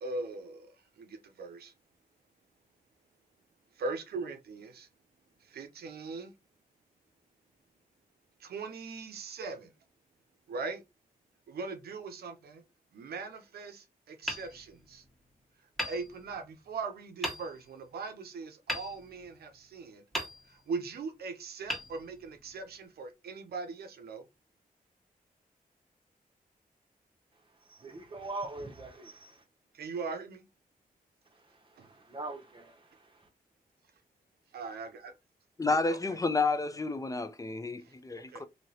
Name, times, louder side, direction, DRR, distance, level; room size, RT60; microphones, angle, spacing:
voice 1, 0.0-1.7 3.8-4.9 5.4-6.3 8.4-9.7 10.5-10.8 11.5-12.6 12.9-15.0 15.9-20.0 20.5-24.2 29.7-30.4 31.8-31.9 34.5-35.1 35.7-35.8 36.1-36.2 38.3-38.4, right 4 dB, 85° right, 0.6 m, -40 dB
Hammer, 14.2-15.2 15.8-16.7 17.2-17.8 18.7-19.6 20.1-20.9 21.6-22.6, equal, ahead, 1.3 m, -39 dB
voice 2, 27.7-29.4 31.8-33.2, right 2 dB, 35° right, 0.9 m, -42 dB
voice 3, 35.6-38.4, left 3 dB, 20° left, 0.5 m, -30 dB
3.0 x 2.8 x 2.7 m
cardioid pair, 50°, 16 cm